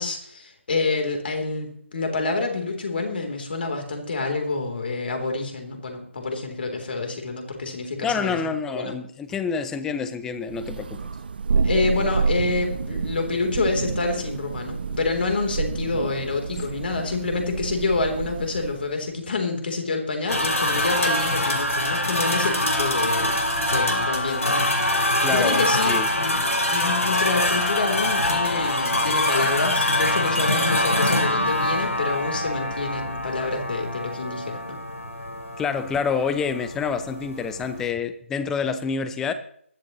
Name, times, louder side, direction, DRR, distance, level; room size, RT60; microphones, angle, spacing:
voice 1, 0.0-8.9 11.6-34.8, left 3 dB, 45° left, 4 dB, 3.4 m, -27 dB
voice 2, 8.0-11.1 25.2-26.1 35.6-39.3, left 6 dB, 5° left, 11 dB, 0.6 m, -27 dB
Thunder, 10.5-18.9, right 5 dB, 45° right, 0.8 m, -28 dB
sound 1, 20.3-37.9, left 1 dB, 85° left, 2.9 m, -24 dB
20.5 x 11.5 x 3.1 m, 0.63 s
figure-of-eight pair, 155°, 7 cm